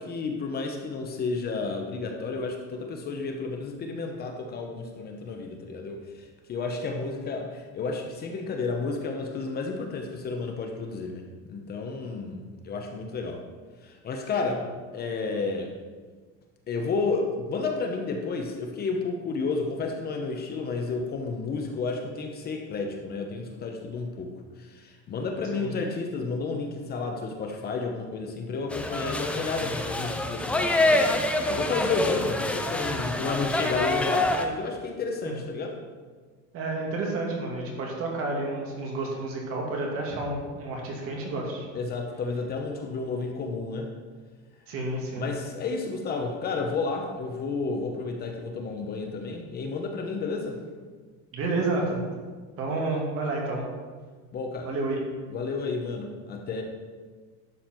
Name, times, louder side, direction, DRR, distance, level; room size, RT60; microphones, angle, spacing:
voice 1, 0.0-11.2 11.5-13.4 13.8-14.7 14.9-15.7 16.7-24.3 24.6-31.2 31.4-35.8 41.7-43.9 45.2-50.6 54.3-54.7 55.3-56.6, left 4 dB, 30° left, 3 dB, 0.9 m, -31 dB
sound 1, 28.7-34.4, left 1 dB, 5° left, 0.4 m, -26 dB
voice 2, 36.5-41.7 44.7-45.3 51.3-52.0 52.6-53.7 54.6-55.0, right 2 dB, 45° right, -1 dB, 2.5 m, -30 dB
12.0 x 7.2 x 4.6 m, 1.5 s
cardioid pair, 170°, 32 cm